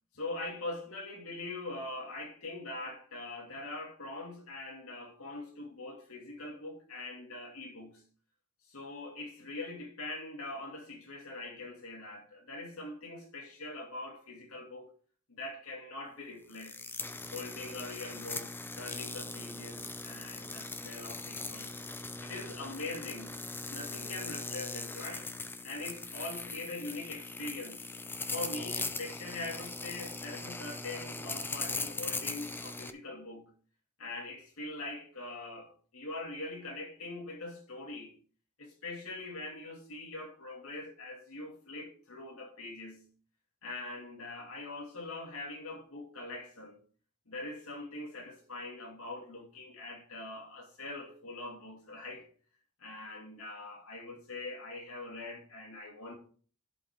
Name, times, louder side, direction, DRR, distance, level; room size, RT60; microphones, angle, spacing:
voice 1, 0.1-8.0 8.7-14.9 15.3-16.8 17.3-21.8 22.2-23.4 23.7-25.3 25.6-27.9 28.3-33.5 34.0-38.2 38.6-43.1 43.6-46.8 47.3-52.3 52.8-56.2, left 2 dB, 90° left, 2.5 m, -42 dB
sound 1, 16.5-32.9, left 3 dB, 10° left, 0.5 m, -40 dB
11.5 x 5.5 x 3.6 m
head